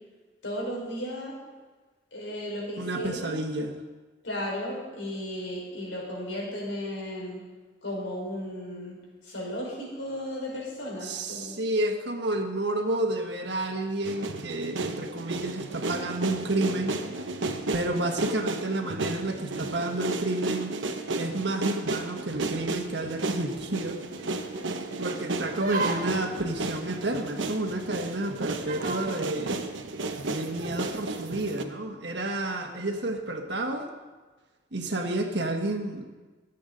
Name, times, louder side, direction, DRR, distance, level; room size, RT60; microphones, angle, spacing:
voice 1, 0.4-1.3 2.1-3.4 4.2-7.4 7.8-9.0 9.2-11.6, equal, 80° left, -3 dB, 5.1 m, -35 dB
voice 2, 2.8-3.7 11.0-17.0 17.7-20.7 21.1-24.0 25.0-29.7 30.2-33.9 34.7-36.0, right 2 dB, 65° right, 3 dB, 1.5 m, -30 dB
sound 1, 14.0-31.6, right 2 dB, 85° right, 1.1 m, -33 dB
sound 2, 23.5-23.6 24.0-24.1 24.6-24.9 25.6-26.3 26.9-27.1 27.5-27.6 27.8-28.0 28.7-29.1 30.6-30.8, right 2 dB, 45° right, 1.4 m, -33 dB
25.0 x 8.4 x 4.0 m, 1.3 s
head